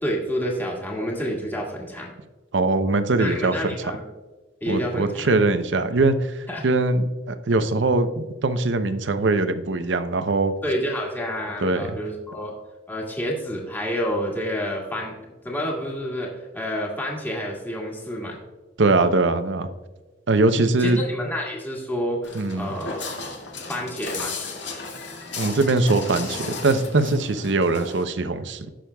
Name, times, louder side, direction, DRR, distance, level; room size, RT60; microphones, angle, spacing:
voice 1, 0.0-2.1 3.2-4.0 4.6-5.3 6.5-6.6 10.6-12.5 12.9-15.1 15.4-18.4 20.8-23.1 23.7-24.4, equal, 10° left, -2 dB, 1.7 m, -29 dB
voice 2, 2.5-3.9 4.7-10.5 11.6-11.8 18.8-19.7 20.3-21.0 22.3-22.7 25.4-28.7, right 3 dB, 70° right, 10 dB, 0.7 m, -22 dB
Walk footsteps, 22.2-28.0, left 4 dB, 70° left, 1.9 m, -34 dB
17.5 x 6.3 x 2.3 m, 1.2 s
head